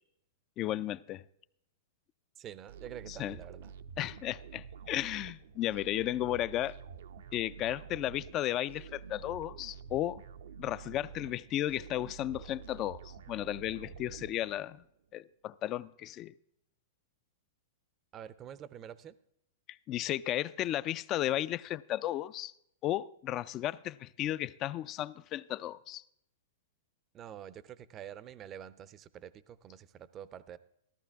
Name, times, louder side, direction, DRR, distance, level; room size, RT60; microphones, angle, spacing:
voice 1, 0.6-1.2 3.1-3.3 4.0-6.8 7.3-10.2 10.6-14.8 15.1-16.3 19.9-22.5 22.8-26.0, left 13 dB, 30° left, 0.4 m, -34 dB
voice 2, 2.4-3.7 18.1-19.2 27.1-30.6, right 10 dB, 25° right, 0.5 m, -47 dB
sound 1, 2.7-14.9, right 7 dB, 75° right, 0.7 m, -49 dB
14.5 x 13.5 x 3.5 m
hypercardioid pair, 135°, 0 cm